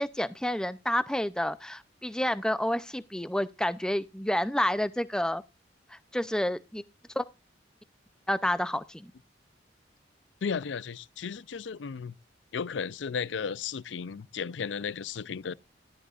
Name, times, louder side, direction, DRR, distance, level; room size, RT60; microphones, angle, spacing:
voice 1, 0.0-5.4 5.9-6.8 7.2-7.3 8.3-9.1, left 1 dB, 5° left, 0.5 m, -29 dB
voice 2, 10.4-12.2 12.5-15.5, left 6 dB, 80° left, 0.5 m, -34 dB
14.0 x 12.0 x 2.4 m
head